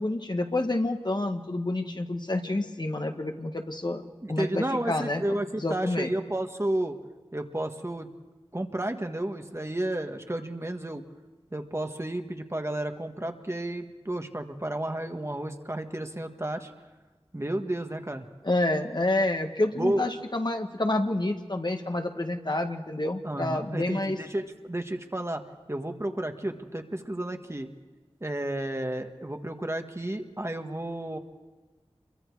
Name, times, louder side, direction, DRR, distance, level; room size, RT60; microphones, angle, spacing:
voice 1, 0.0-5.2 5.6-6.1 18.4-24.2, left 2 dB, 45° left, 5 dB, 1.5 m, -28 dB
voice 2, 4.2-7.0 7.3-8.1 8.5-11.0 11.5-16.7 17.3-18.3 19.8-20.1 23.2-25.4 25.7-27.7 28.2-31.2, right 1 dB, 25° right, 5 dB, 1.5 m, -32 dB
27.0 x 23.0 x 4.8 m, 1.3 s
wide cardioid pair, 50°, 10 cm